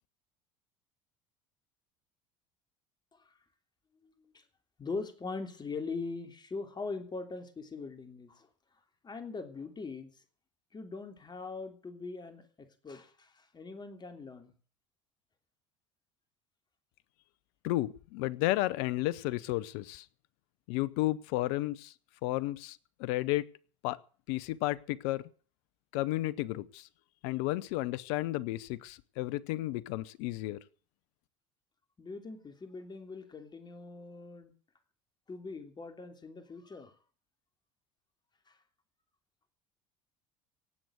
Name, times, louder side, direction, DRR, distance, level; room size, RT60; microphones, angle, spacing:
voice 1, 4.8-8.5 9.0-10.1 10.7-14.5 32.0-34.5 35.3-36.9, left 4 dB, 25° left, 7 dB, 3.3 m, -41 dB
voice 2, 17.6-20.1 20.7-21.9 22.2-23.5 23.8-24.0 24.3-25.2 25.9-26.9 27.2-30.6, left 17 dB, 65° left, 20 dB, 0.8 m, -32 dB
18.0 x 7.9 x 8.0 m, 0.42 s
hypercardioid pair, 70°, 16 cm